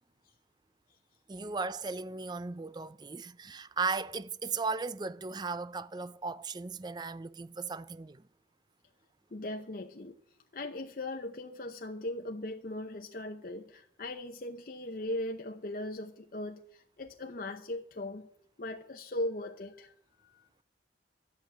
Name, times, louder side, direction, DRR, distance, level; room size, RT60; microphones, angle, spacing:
voice 1, 1.3-8.2, right 4 dB, 25° right, 0.5 m, -36 dB
voice 2, 9.3-10.1 10.5-18.3 18.6-20.5, left 1 dB, 50° left, 0.8 m, -39 dB
12.5 x 7.3 x 9.3 m
head